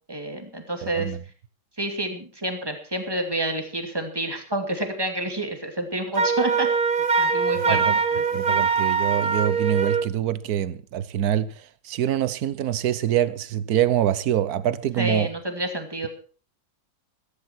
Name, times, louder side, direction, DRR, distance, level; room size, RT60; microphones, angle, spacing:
voice 1, 0.1-1.2 1.8-6.7 7.2-8.5 15.0-16.1, right 1 dB, 10° right, 2.4 m, -29 dB
voice 2, 0.8-1.2 7.7-7.9 8.3-11.5 11.8-15.3, right 11 dB, 60° right, 1.2 m, -25 dB
Wind instrument woodwind instrument, 6.2-10.1, right 5 dB, 35° right, 1.0 m, -22 dB
15.0 x 14.5 x 4.5 m
omnidirectional pair, 2.1 m